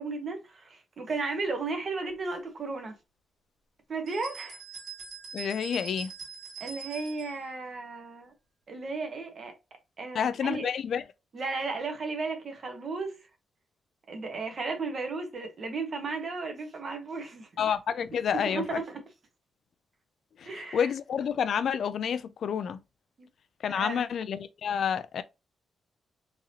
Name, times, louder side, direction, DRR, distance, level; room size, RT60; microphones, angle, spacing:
voice 1, 0.0-2.9 3.9-4.6 6.6-8.3 8.7-9.5 10.0-10.7 11.3-13.2 14.1-17.5 18.3-19.0 20.4-20.9 23.2-23.3 23.7-24.0, right 3 dB, 45° right, 1.1 m, -34 dB
sound 1, 4.1-7.4, right 6 dB, 80° right, 2.2 m, -43 dB
voice 2, 5.3-6.1 10.1-11.0 17.6-18.8 20.4-22.8 23.6-25.2, left 8 dB, 65° left, 0.3 m, -29 dB
3.9 x 2.9 x 2.8 m
cardioid pair, 105°, 0 cm